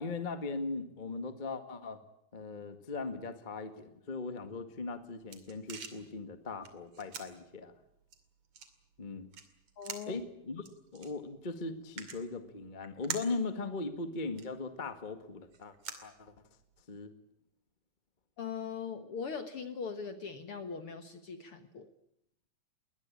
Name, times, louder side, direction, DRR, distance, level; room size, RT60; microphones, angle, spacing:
voice 1, 0.0-2.0 2.3-7.7 9.0-9.3 10.1-10.6 10.9-16.3 16.9-17.1, left 3 dB, 25° left, 9 dB, 1.1 m, -39 dB
sound 1, 4.7-16.8, right 6 dB, 50° right, 3.4 m, -49 dB
voice 2, 9.8-10.2 18.4-21.9, left 6 dB, 50° left, 9 dB, 1.8 m, -40 dB
22.0 x 20.0 x 8.8 m, 0.79 s
omnidirectional pair, 3.9 m